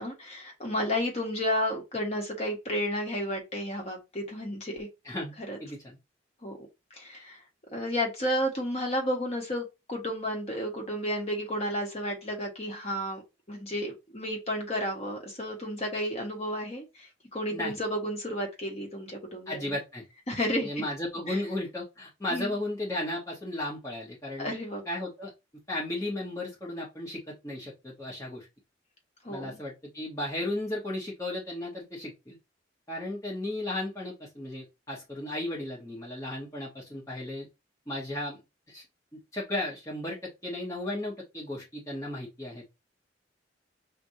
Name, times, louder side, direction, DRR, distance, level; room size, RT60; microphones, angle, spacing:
voice 1, 0.0-4.9 5.5-5.6 6.4-6.6 6.9-7.4 7.7-13.2 13.5-19.7 20.3-20.7 21.3-21.4 22.3-22.5 24.4-24.8 29.2-29.6, equal, 35° left, 1.3 m, -32 dB
voice 2, 5.6-6.0 17.5-17.7 19.5-20.0 20.6-24.5 24.9-25.3 25.7-28.5 29.3-32.4 32.9-37.5 37.9-38.4 38.7-38.8 39.3-42.6, left 1 dB, 15° left, 1.1 m, -35 dB
6.2 x 2.5 x 2.7 m
head